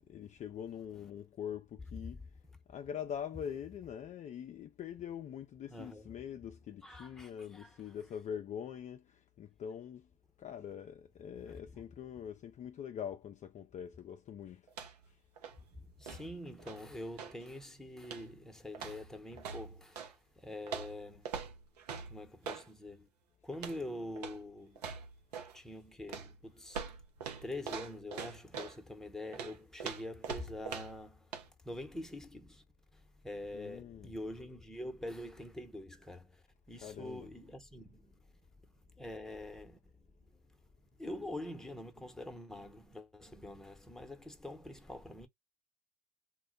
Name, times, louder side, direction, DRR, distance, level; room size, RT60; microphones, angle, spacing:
voice 1, 0.1-2.2 2.7-10.1 10.4-14.6 33.5-34.1 36.8-37.3, left 8 dB, 35° left, 0.4 m, -43 dB
voice 2, 5.7-6.1 6.8-7.8 11.5-11.8 15.7-21.3 22.1-23.1 23.4-24.8 25.5-26.8 27.4-31.4 31.6-32.6 32.9-38.2 38.8-40.3 41.0-45.3, left 1 dB, ahead, 0.8 m, -45 dB
sound 1, 14.7-15.1 15.4-17.4 18.0-18.4 18.7-20.1 20.7-22.7 23.5-23.9 24.2-24.4 24.8-25.6 26.1-28.8 29.3-31.1 31.3-31.5, right 6 dB, 85° right, 0.6 m, -44 dB
2.2 x 2.1 x 3.8 m
hypercardioid pair, 60°, 20 cm